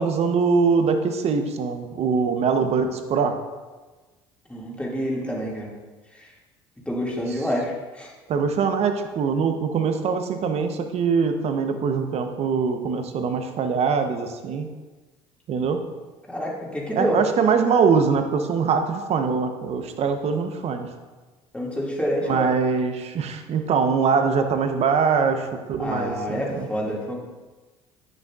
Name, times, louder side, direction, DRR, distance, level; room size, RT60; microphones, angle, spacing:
voice 1, 0.0-3.4 8.3-14.7 15.5-15.8 17.0-20.9 22.2-26.7, right 5 dB, 50° right, 7 dB, 0.8 m, -23 dB
voice 2, 4.5-5.7 6.1-6.3 6.9-8.1 16.3-17.2 21.5-22.5 25.8-27.2, equal, 10° left, -3 dB, 2.1 m, -27 dB
8.9 x 6.6 x 2.4 m, 1.3 s
hypercardioid pair, 70°, 14 cm